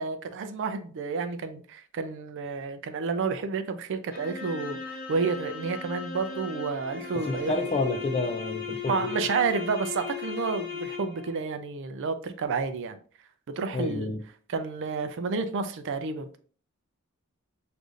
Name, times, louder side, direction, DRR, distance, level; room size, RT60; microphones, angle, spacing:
voice 1, 0.0-7.7 8.9-13.0 13.6-14.1 14.5-16.4, right 4 dB, 60° right, 0.4 m, -30 dB
sound 1, 4.1-11.4, left 6 dB, 45° left, 0.7 m, -37 dB
voice 2, 7.1-9.2 13.7-14.2, left 2 dB, 25° left, 0.3 m, -29 dB
6.4 x 2.6 x 2.5 m
head